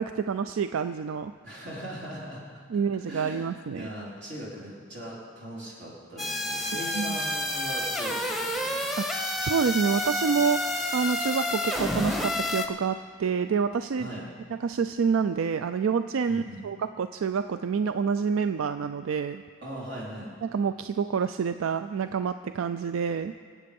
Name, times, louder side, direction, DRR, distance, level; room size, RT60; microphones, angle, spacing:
voice 1, 0.0-1.3 2.7-3.9 6.7-7.2 9.0-14.1 14.5-19.4 20.4-23.3, right 6 dB, 90° right, 10 dB, 0.4 m, -28 dB
voice 2, 1.4-2.4 2.7-3.5 3.7-8.8 14.0-14.3 16.3-16.7 19.6-20.3, equal, 60° right, -5 dB, 4.2 m, -39 dB
sound 1, 6.2-12.7, left 1 dB, ahead, 1.1 m, -29 dB
24.0 x 8.5 x 5.3 m, 2.2 s
head